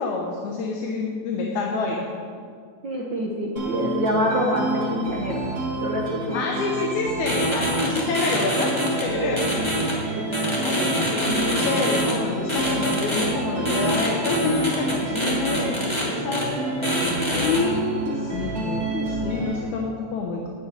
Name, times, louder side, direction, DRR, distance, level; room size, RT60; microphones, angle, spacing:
voice 1, 0.0-2.1 6.3-9.4 10.6-16.5 17.3-20.5, left 4 dB, 80° left, 0 dB, 2.4 m, -27 dB
voice 2, 2.8-5.4 5.8-6.5 9.2-9.3 10.1-10.2, equal, 55° right, -2 dB, 1.3 m, -25 dB
sound 1, 3.6-19.6, right 2 dB, 30° right, 3.0 m, -29 dB
sound 2, 7.3-9.0 9.4-9.9 10.3-12.1 12.5-13.2 13.6-16.0 16.3-16.4 16.8-17.6, equal, 10° left, 2.5 m, -25 dB
11.0 x 6.5 x 9.0 m, 2.1 s
omnidirectional pair, 3.4 m